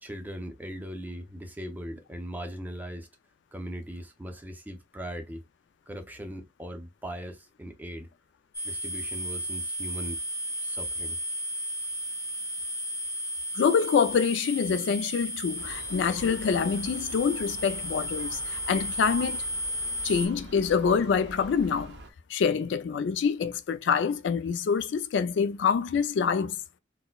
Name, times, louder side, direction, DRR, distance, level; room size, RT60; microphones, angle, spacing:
voice 1, 0.0-3.1 3.5-5.4 5.9-8.1 8.6-10.2 10.6-11.2, equal, 10° right, 0.5 m, -39 dB
sound 1, 8.5-20.3, equal, 15° left, 0.9 m, -34 dB
voice 2, 13.5-19.4 20.0-21.9 22.3-26.6, left 6 dB, 70° left, 0.3 m, -26 dB
Gull seagull, 15.6-22.1, right 1 dB, 65° right, 0.6 m, -46 dB
4.2 x 2.1 x 2.2 m
head